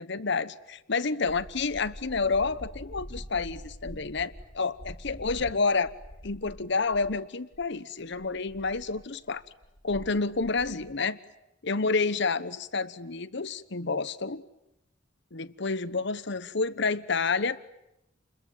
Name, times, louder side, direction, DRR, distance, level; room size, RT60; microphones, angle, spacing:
voice 1, 0.0-5.9 6.2-9.4 9.8-11.2 11.6-14.4 15.3-17.6, left 4 dB, 65° left, 16 dB, 1.1 m, -29 dB
sound 1, 1.2-7.2 7.5-7.6 8.0-11.0, equal, 45° left, 2.3 m, -45 dB
29.0 x 22.0 x 9.3 m, 0.87 s
head